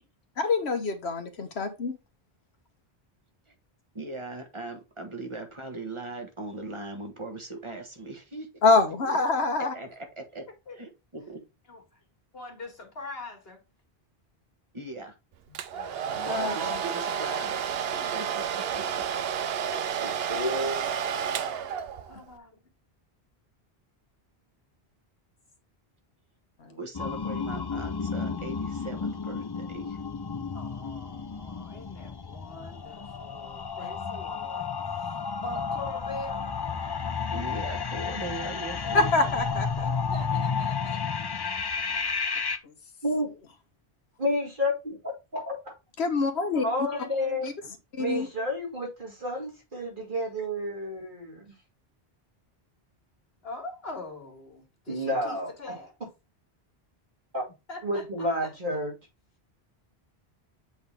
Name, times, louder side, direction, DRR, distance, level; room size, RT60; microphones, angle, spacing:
voice 1, 0.4-1.9 8.6-9.7 16.3-16.8 26.6-26.8 33.8-33.9 38.9-39.9 42.6-42.7 46.0-46.6 47.4-47.5 47.9-48.3, left 3 dB, 90° left, 1.4 m, -25 dB
voice 2, 3.9-8.5 9.1-9.2 9.7-10.0 10.3-10.4 10.8-11.4 14.7-15.1 16.2-19.0 22.1-22.2 26.7-30.0 37.3-39.1, right 2 dB, 30° right, 1.4 m, -39 dB
voice 3, 11.7-12.0 12.3-13.6 15.7-16.4 19.7-20.2 21.5-21.6 22.0-22.6 30.5-36.5 38.8-39.0 39.8-41.0 46.5-47.4 53.4-55.9 57.7-58.5, left 2 dB, 70° left, 2.1 m, -43 dB
Domestic sounds home sounds, 15.5-22.2, right 8 dB, 75° right, 0.8 m, -31 dB
voice 4, 20.3-20.7 43.0-43.3 44.2-44.9 45.3-45.6 46.6-47.4 48.0-51.5 54.9-55.5 57.3-57.4 57.8-58.9, left 1 dB, 55° right, 2.8 m, -30 dB
sound 1, 26.9-42.6, left 5 dB, 35° left, 0.4 m, -32 dB
7.8 x 3.8 x 3.4 m
omnidirectional pair, 1.0 m